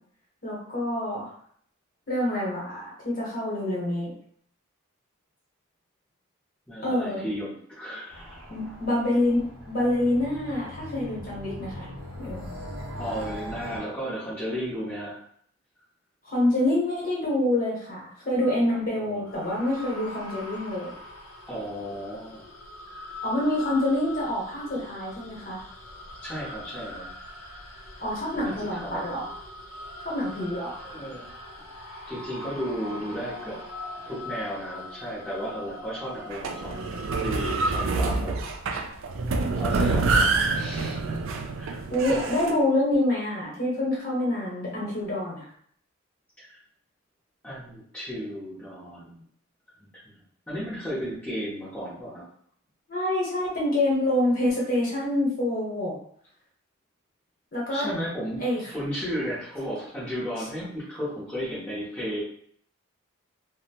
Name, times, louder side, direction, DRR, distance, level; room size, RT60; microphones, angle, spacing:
voice 1, 0.4-1.3 2.1-4.1 6.8-7.3 8.5-11.9 12.2-12.5 16.2-20.9 23.2-25.6 28.0-29.3 30.0-30.8 41.9-45.4 52.9-55.9 57.5-57.8 58.4-58.6, left 1 dB, 40° left, -5 dB, 1.0 m, -26 dB
voice 2, 6.7-8.5 13.0-15.2 19.0-19.2 21.5-22.4 26.2-27.1 28.4-29.2 30.8-31.3 32.1-33.6 34.1-38.3 39.5-41.2 41.6-41.8 46.4-46.6 47.4-49.2 49.8-50.2 50.5-52.2 57.7-58.4 58.7-62.2, equal, 5° left, -10 dB, 0.6 m, -34 dB
sound 1, 8.1-13.8, left 1 dB, 45° right, 0.7 m, -40 dB
sound 2, 19.3-37.7, left 2 dB, 80° left, 0.6 m, -42 dB
sound 3, 36.3-42.5, right 3 dB, 65° right, 0.3 m, -26 dB
2.6 x 2.0 x 2.8 m, 0.62 s
head